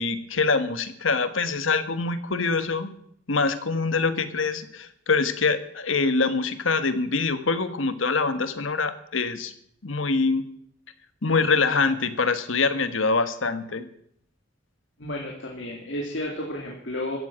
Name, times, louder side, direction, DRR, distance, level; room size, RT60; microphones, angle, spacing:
voice 1, 0.0-2.9 3.3-9.5 9.8-10.4 11.2-13.9, left 4 dB, 85° left, 11 dB, 1.5 m, -24 dB
voice 2, 15.0-17.2, left 1 dB, 65° left, -1 dB, 2.8 m, -32 dB
15.0 x 8.9 x 8.8 m, 0.68 s
head